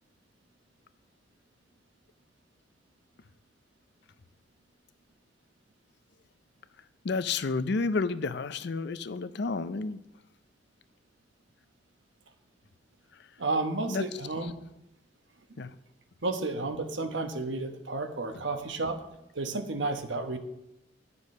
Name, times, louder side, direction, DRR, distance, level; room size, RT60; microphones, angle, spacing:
voice 1, 7.0-10.0 13.9-14.0 15.6-15.7, left 4 dB, 65° left, 14 dB, 0.5 m, -30 dB
voice 2, 13.4-14.6 16.2-19.0 19.3-20.4, right 2 dB, 85° right, 6 dB, 1.1 m, -31 dB
10.5 x 7.0 x 5.4 m, 0.85 s
head